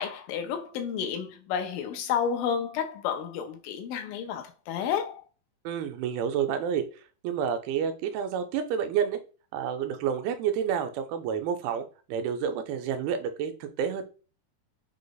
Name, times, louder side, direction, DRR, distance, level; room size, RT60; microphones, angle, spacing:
voice 1, 0.0-5.2, left 8 dB, 80° left, 2.2 m, -31 dB
voice 2, 5.6-6.9 7.2-9.2 9.5-14.0, right 8 dB, 90° right, 2.5 m, -29 dB
5.8 x 2.0 x 3.9 m
omnidirectional pair, 4.2 m